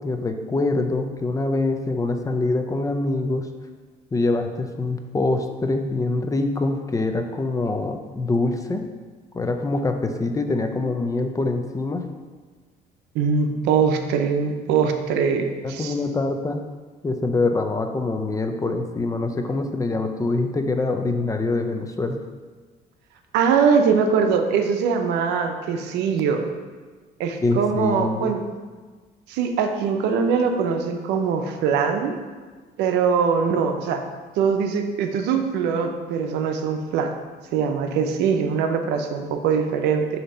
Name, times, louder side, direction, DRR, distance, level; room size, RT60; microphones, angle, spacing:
voice 1, 0.0-3.5 4.1-8.9 9.3-12.1 15.6-16.7 17.0-22.2 27.4-28.3, left 2 dB, 20° left, 6 dB, 0.5 m, -24 dB
voice 2, 13.1-15.9 23.3-26.5 27.2-28.4 29.3-32.2 32.8-34.0 34.4-37.1 37.5-40.1, right 6 dB, 85° right, 6 dB, 0.6 m, -22 dB
6.6 x 2.9 x 5.4 m, 1.4 s
cardioid pair, 110°, 17 cm